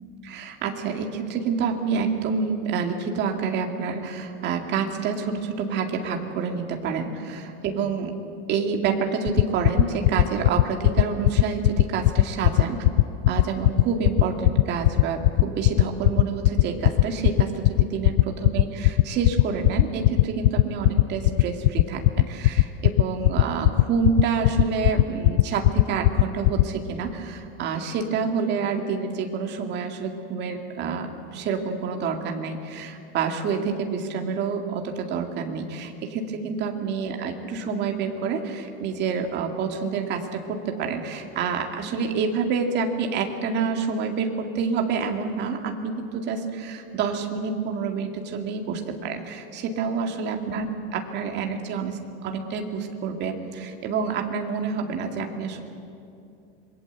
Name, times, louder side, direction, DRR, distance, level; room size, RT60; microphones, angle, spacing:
voice 1, 0.2-8.2 8.5-12.8 13.3-50.7 50.9-55.6, right 5 dB, 30° right, 3 dB, 2.3 m, -28 dB
sound 1, 9.3-26.6, left 16 dB, 65° left, 0.6 m, -16 dB
27.0 x 22.0 x 8.2 m, 2.6 s
supercardioid pair, 175°, 34 cm